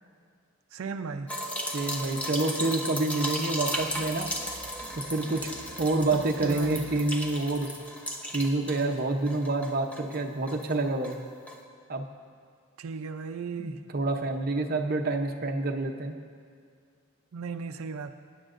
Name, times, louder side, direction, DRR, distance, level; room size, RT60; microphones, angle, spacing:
voice 1, 0.7-1.3 6.1-7.0 12.8-13.8 17.3-18.1, right 5 dB, 90° right, 8 dB, 0.4 m, -36 dB
sound 1, 1.3-9.0 9.3-10.7 11.0-11.2 11.5-11.6, equal, 5° left, 0.8 m, -35 dB
voice 2, 1.7-4.3 5.1-5.5 5.8-7.7 8.3-11.2 11.9-12.0 13.6-16.2, right 2 dB, 45° right, 3 dB, 0.7 m, -28 dB
sound 2, 3.7-8.0, right 1 dB, 55° left, 1.5 m, -49 dB
22.0 x 9.9 x 2.5 m, 2.2 s
head